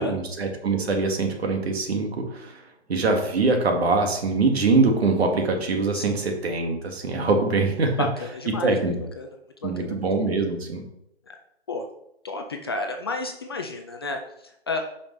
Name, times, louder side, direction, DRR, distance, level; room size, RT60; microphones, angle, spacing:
voice 1, 0.0-2.6 2.9-8.1 8.6-9.0 9.6-10.8, right 3 dB, 70° right, 4 dB, 1.8 m, -23 dB
voice 2, 8.0-8.8 9.2-9.3 9.6-9.7 11.3-11.4 11.7-11.9 12.2-14.9, left 3 dB, 25° left, 3 dB, 0.4 m, -31 dB
9.0 x 5.2 x 3.2 m, 0.79 s
hypercardioid pair, 150°, 33 cm